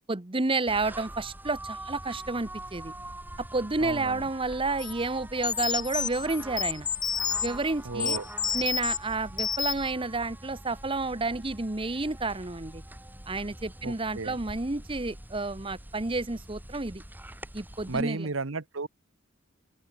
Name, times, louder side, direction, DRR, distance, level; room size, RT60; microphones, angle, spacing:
voice 1, 0.1-2.9 3.5-6.9 7.4-8.2 8.5-12.8 13.3-17.0 17.5-18.3, right 3 dB, 25° right, 1.0 m, -30 dB
sound 1, 0.7-18.0, right 1 dB, 10° right, 2.8 m, -44 dB
voice 2, 3.8-4.2 7.8-8.3 13.8-14.4 17.9-18.9, right 3 dB, 85° right, 1.2 m, -33 dB
sound 2, 4.8-4.9 5.4-7.5 8.0-9.0 9.4-9.9, left 7 dB, 20° left, 1.0 m, -29 dB
open air
head